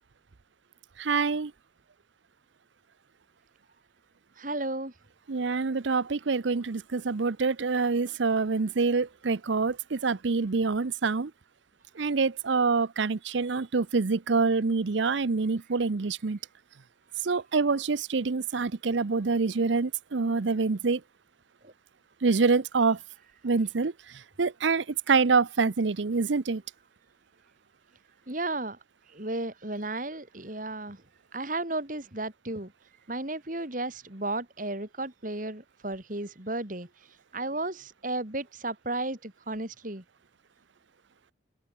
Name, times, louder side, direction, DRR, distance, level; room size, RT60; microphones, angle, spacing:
voice 1, 1.0-1.5 5.3-11.3 12.0-16.4 17.2-21.0 22.2-23.0 23.4-23.9 24.4-26.6, right 4 dB, 70° right, 0.7 m, -26 dB
voice 2, 4.4-4.9 21.6-21.7 28.3-28.8 29.1-31.0 31.3-32.7 33.1-36.9 37.3-40.0, right 2 dB, 45° right, 2.7 m, -34 dB
open air
head